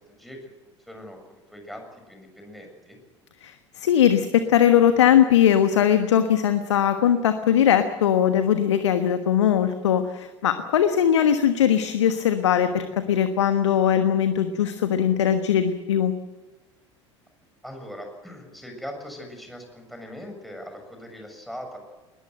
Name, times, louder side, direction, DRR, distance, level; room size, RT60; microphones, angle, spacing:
voice 1, 0.2-0.5 0.9-3.0 17.6-21.8, equal, ahead, 3 dB, 7.0 m, -40 dB
voice 2, 3.4-16.1, left 9 dB, 70° left, 9 dB, 1.3 m, -20 dB
21.0 x 21.0 x 7.9 m, 1.2 s
figure-of-eight pair, 70°, 15 cm